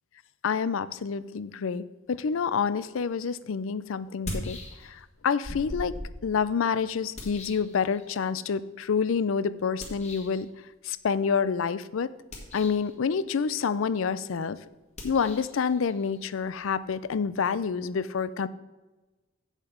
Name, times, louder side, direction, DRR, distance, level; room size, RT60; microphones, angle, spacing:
voice 1, 0.4-6.0 6.2-10.5 10.8-12.1 12.5-14.6 15.0-18.5, left 6 dB, 75° left, 16 dB, 0.4 m, -28 dB
sound 1, 3.1-3.2 4.1-5.1 5.4-8.3 9.8-10.4 12.2-12.9 14.9-17.5, left 1 dB, 35° left, 1.8 m, -41 dB
8.0 x 7.3 x 5.1 m, 1.2 s
head